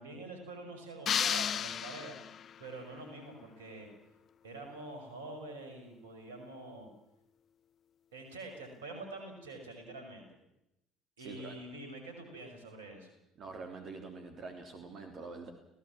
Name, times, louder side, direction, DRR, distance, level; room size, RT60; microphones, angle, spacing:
voice 1, 0.0-2.2 2.6-3.9 4.4-6.9 8.1-10.2 11.2-13.1, right 2 dB, 75° right, 5 dB, 5.9 m, -46 dB
sound 1, 1.1-2.6, left 8 dB, 45° left, 0.9 m, -33 dB
voice 2, 11.2-11.5 13.4-15.5, right 4 dB, 45° right, 4 dB, 3.5 m, -45 dB
26.5 x 17.5 x 7.5 m, 0.87 s
figure-of-eight pair, 60°, 0 cm